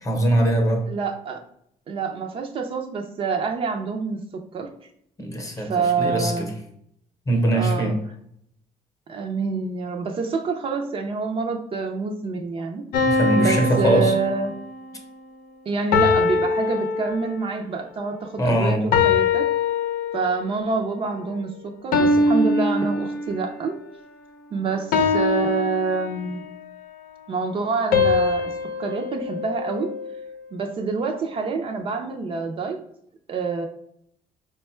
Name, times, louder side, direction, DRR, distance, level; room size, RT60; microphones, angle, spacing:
voice 1, 0.0-0.8 5.2-5.7 6.0-6.5 7.3-8.0 13.1-14.1 18.4-18.9, right 1 dB, 20° left, 3 dB, 0.8 m, -21 dB
voice 2, 0.9-1.4 1.9-4.7 5.6-6.5 7.5-7.9 9.1-12.8 13.3-14.5 15.7-19.4 20.1-23.8 24.5-26.4 27.3-28.5 28.8-29.9 30.5-32.8 33.3-33.7, right 4 dB, 40° right, 3 dB, 0.5 m, -27 dB
sound 1, 12.9-14.9 15.9-17.6 18.9-20.5 21.9-23.6 24.9-26.5 27.9-30.3, left 4 dB, 75° left, 0.6 m, -23 dB
5.0 x 2.3 x 4.3 m, 0.71 s
cardioid pair, 160°, 15 cm